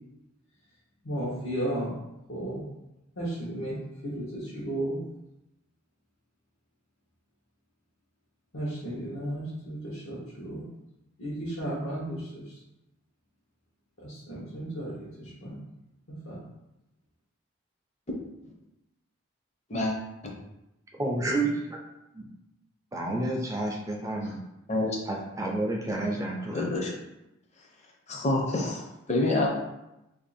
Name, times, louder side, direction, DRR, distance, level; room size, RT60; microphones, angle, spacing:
voice 1, 1.0-1.9 2.3-2.6 3.2-3.8 4.0-5.0 8.5-10.6 11.2-12.6 14.0-15.6 16.2-16.4, right 1 dB, 75° left, -9 dB, 1.0 m, -34 dB
voice 2, 21.0-21.5 22.1-22.3 22.9-24.4 25.1-26.8, right 2 dB, 15° right, 0 dB, 0.4 m, -30 dB
voice 3, 26.5-26.9 28.1-28.8 29.1-29.5, left 2 dB, 35° left, 0 dB, 0.6 m, -26 dB
2.8 x 2.7 x 4.1 m, 0.91 s
head